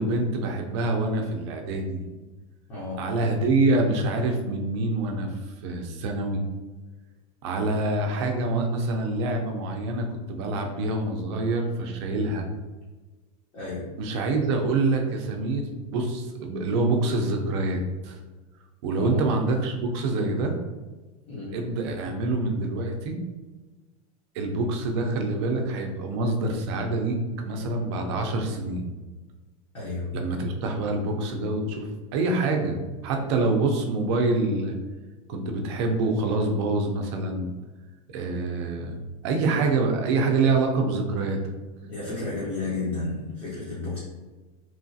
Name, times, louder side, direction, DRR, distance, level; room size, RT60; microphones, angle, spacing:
voice 1, 0.0-2.1 3.0-5.3 5.6-6.4 7.4-12.4 14.0-18.2 18.8-20.6 21.5-23.2 24.3-28.8 30.1-32.8 33.0-34.7 35.3-37.6 38.1-38.9 39.2-41.4, right 2 dB, 50° right, 3 dB, 0.5 m, -26 dB
voice 2, 2.7-3.1 13.5-13.9 18.9-19.2 21.3-21.6 29.7-30.2 41.8-44.0, left 3 dB, 30° left, -8 dB, 0.7 m, -32 dB
3.1 x 2.3 x 2.6 m, 1.2 s
supercardioid pair, 170°, 18 cm